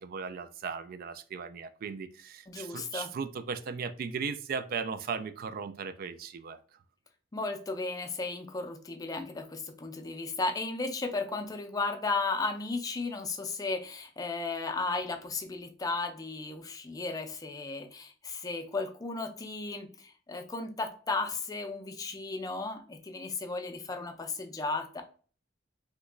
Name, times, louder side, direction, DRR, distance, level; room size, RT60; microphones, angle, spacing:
voice 1, 0.0-6.6, right 5 dB, 50° right, 11 dB, 0.3 m, -37 dB
voice 2, 2.5-3.1 7.3-25.0, left 3 dB, 20° left, 6 dB, 0.4 m, -35 dB
3.0 x 2.2 x 3.7 m, 0.39 s
head